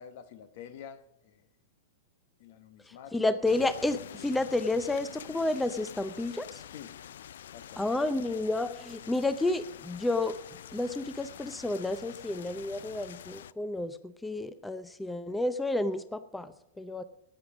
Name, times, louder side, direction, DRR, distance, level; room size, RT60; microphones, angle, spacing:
voice 1, 0.0-1.5 2.4-3.2 6.7-7.0 7.5-7.8, left 8 dB, 60° left, 1.1 m, -48 dB
voice 2, 2.8-6.6 7.8-10.4 10.7-17.0, left 2 dB, 5° left, 0.6 m, -31 dB
sound 1, 3.4-13.5, left 10 dB, 75° left, 0.3 m, -47 dB
12.5 x 9.1 x 6.1 m
hypercardioid pair, 120°, 0 cm